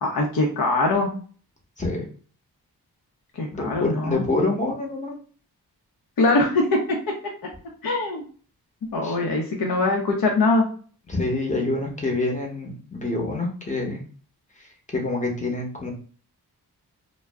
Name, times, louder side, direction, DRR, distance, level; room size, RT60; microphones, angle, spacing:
voice 1, 0.0-1.1 3.4-4.2 6.2-7.0 7.8-8.2 8.9-10.6, left 2 dB, 60° left, 0 dB, 0.6 m, -22 dB
voice 2, 3.5-5.1 9.0-9.1 11.1-14.0 14.9-15.9, left 2 dB, 20° left, 0 dB, 0.8 m, -26 dB
2.3 x 2.0 x 3.4 m, 0.42 s
wide cardioid pair, 80°, 39 cm